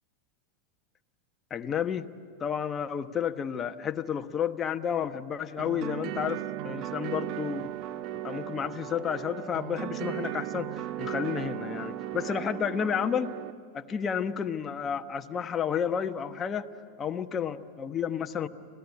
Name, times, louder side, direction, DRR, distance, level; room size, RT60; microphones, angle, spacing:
voice 1, 1.5-2.1 2.4-7.7 8.2-13.4 13.7-16.7 17.0-18.5, left 8 dB, 25° left, 7 dB, 1.1 m, -31 dB
sound 1, 5.6-13.5, right 13 dB, 50° right, 0.8 m, -36 dB
27.0 x 17.5 x 9.8 m, 2.5 s
hypercardioid pair, 100°, 0 cm